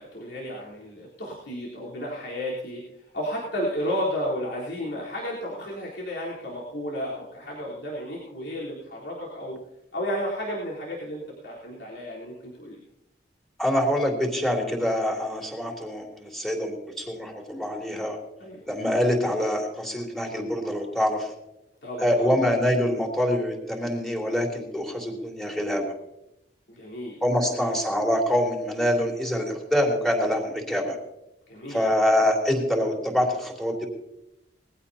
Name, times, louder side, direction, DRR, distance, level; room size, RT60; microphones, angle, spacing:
voice 1, 0.0-9.6 9.9-12.8 18.4-18.6 21.8-22.3 26.7-27.7 31.5-31.8, equal, 90° left, -6 dB, 3.9 m, -33 dB
voice 2, 13.6-18.2 18.7-21.3 22.0-25.9 27.2-31.0 31.7-33.9, equal, ahead, 0 dB, 3.1 m, -25 dB
21.0 x 15.5 x 2.9 m, 0.85 s
head